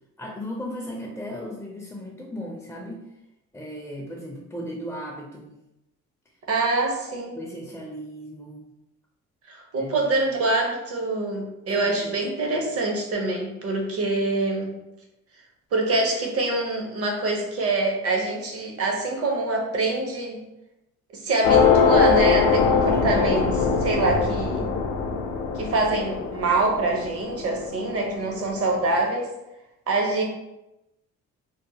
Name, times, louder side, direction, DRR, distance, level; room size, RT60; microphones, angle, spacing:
voice 1, 0.2-3.0 3.5-5.5 7.3-8.7 9.7-10.1 11.7-12.2 22.9-23.2, equal, 5° left, -1 dB, 0.4 m, -36 dB
voice 2, 6.5-7.4 9.5-14.7 15.7-20.4 21.2-24.7 25.5-29.3 29.9-30.2, right 2 dB, 50° right, 1 dB, 0.7 m, -25 dB
sound 1, 21.4-28.3, left 5 dB, 80° left, 0.5 m, -22 dB
2.8 x 2.1 x 2.7 m, 0.93 s
cardioid pair, 90°, 30 cm